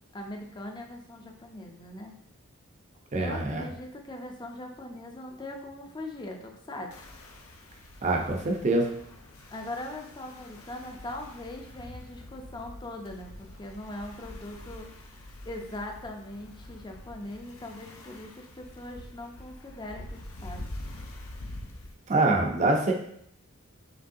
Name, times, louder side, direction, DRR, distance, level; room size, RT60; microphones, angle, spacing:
voice 1, 0.1-2.2 3.2-6.9 9.5-14.9 15.5-20.6, left 1 dB, 20° left, 2 dB, 0.5 m, -40 dB
voice 2, 3.1-3.7 8.0-8.9 22.1-22.9, right 2 dB, 35° right, 2 dB, 0.6 m, -25 dB
sound 1, 6.9-21.9, left 1 dB, 70° left, 0.6 m, -45 dB
5.2 x 3.2 x 2.7 m, 0.69 s
head